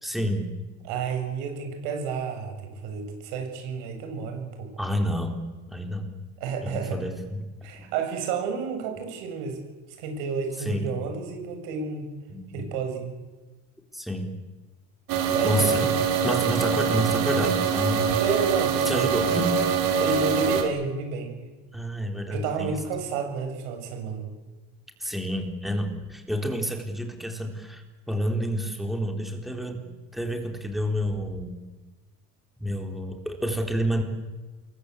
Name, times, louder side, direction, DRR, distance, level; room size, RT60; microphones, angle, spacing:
voice 1, 0.0-0.5 4.8-5.4 5.7-6.1 6.6-7.5 7.8-7.9 10.6-11.0 12.3-12.7 13.9-14.3 15.4-15.9 16.2-18.2 18.8-19.6 21.7-22.8 25.0-29.9 30.1-31.6 32.6-34.0, equal, ahead, 3 dB, 3.8 m, -29 dB
voice 2, 0.8-4.7 6.4-7.0 7.6-9.6 10.0-12.1 12.5-13.1 15.3-15.9 18.2-19.4 20.0-21.4 22.3-24.2, right 5 dB, 80° right, 5 dB, 7.6 m, -31 dB
sound 1, 15.1-20.6, right 6 dB, 60° right, 5.0 m, -24 dB
28.5 x 22.0 x 8.4 m, 1.2 s
cardioid pair, 150°, 37 cm